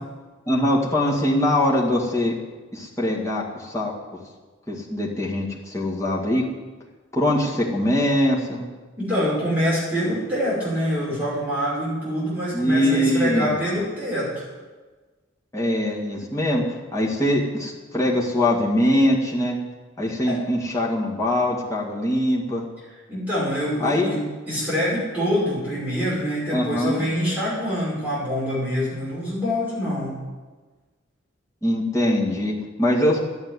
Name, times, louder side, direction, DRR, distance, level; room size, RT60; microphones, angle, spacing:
voice 1, 0.5-2.4 2.7-3.9 4.7-6.4 7.1-8.7 12.5-13.5 15.5-16.6 16.9-19.6 20.0-22.7 23.8-24.2 26.5-27.1 31.6-33.2, left 1 dB, 15° left, -4 dB, 2.0 m, -22 dB
voice 2, 9.0-14.5 20.3-20.4 23.1-24.2 24.5-30.2, equal, 10° right, -9 dB, 5.5 m, -25 dB
12.0 x 8.4 x 9.7 m, 1.3 s
head